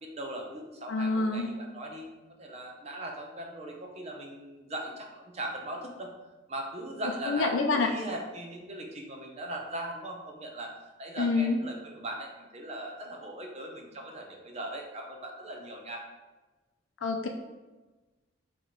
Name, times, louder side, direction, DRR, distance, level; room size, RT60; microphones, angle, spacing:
voice 1, 0.0-2.1 2.4-6.1 6.5-16.1, right 1 dB, 35° right, 1 dB, 0.6 m, -39 dB
voice 2, 0.9-1.5 7.3-7.9 11.2-11.6 17.0-17.3, left 3 dB, 80° left, 4 dB, 0.4 m, -27 dB
4.5 x 3.0 x 3.8 m, 1.2 s
head